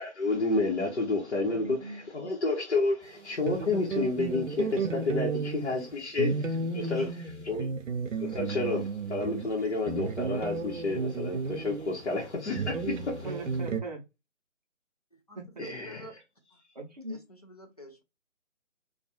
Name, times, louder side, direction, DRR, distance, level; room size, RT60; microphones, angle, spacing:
voice 1, 0.0-7.1 7.5-7.7 8.2-13.3 15.6-16.0, left 3 dB, 60° left, 0.9 m, -30 dB
voice 2, 1.5-2.3 13.2-14.0 15.3-15.7 16.7-17.2, right 2 dB, 35° right, 0.6 m, -40 dB
sound 1, 3.5-13.8, right 4 dB, 85° right, 0.6 m, -33 dB
voice 3, 6.8-7.2 15.1-16.2 16.5-16.6 17.1-18.0, equal, 30° left, 0.5 m, -48 dB
2.3 x 2.3 x 2.7 m
figure-of-eight pair, 150°, 38 cm